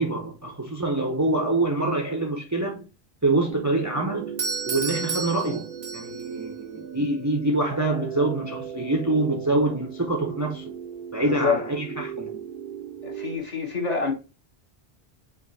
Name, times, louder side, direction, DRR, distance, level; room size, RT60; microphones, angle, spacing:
voice 1, 0.0-2.9 3.2-4.3 4.7-10.7 11.1-12.4, right 2 dB, 20° right, 0.6 m, -25 dB
sound 1, 3.5-13.4, right 8 dB, 60° right, 0.8 m, -37 dB
Doorbell, 4.4-6.4, right 4 dB, 85° right, 1.5 m, -31 dB
voice 2, 11.2-11.6 13.0-14.1, left 5 dB, 40° left, 1.3 m, -26 dB
5.0 x 2.5 x 3.9 m
omnidirectional pair, 1.1 m